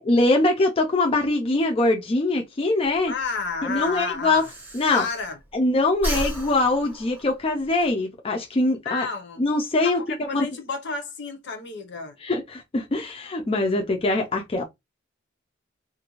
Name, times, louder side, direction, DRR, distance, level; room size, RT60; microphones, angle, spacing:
voice 1, 0.0-3.1 3.6-4.5 4.7-5.0 5.5-9.1 9.4-10.0 10.3-10.5 12.2-14.6, left 2 dB, 30° left, 0.4 m, -22 dB
Breathing, 2.8-5.6 5.9-7.9, right 1 dB, 10° right, 0.8 m, -34 dB
voice 2, 3.0-4.5 4.9-5.4 8.8-9.5 9.8-12.2, left 4 dB, 65° left, 0.7 m, -31 dB
2.4 x 2.1 x 2.9 m
head